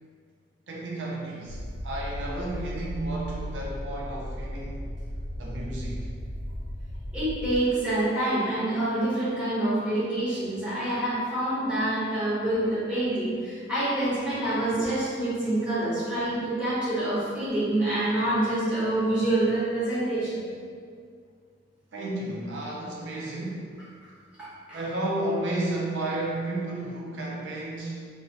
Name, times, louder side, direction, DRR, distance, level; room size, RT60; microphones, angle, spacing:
voice 1, 0.7-4.8 5.4-6.1 21.9-23.8 24.7-28.1, right 1 dB, 85° right, -3 dB, 0.5 m, -32 dB
sound 1, 1.4-7.6, equal, 30° left, 0.3 m, -36 dB
voice 2, 7.1-20.4 24.4-24.8, right 1 dB, 5° right, -12 dB, 0.9 m, -27 dB
3.1 x 2.0 x 2.7 m, 2.1 s
head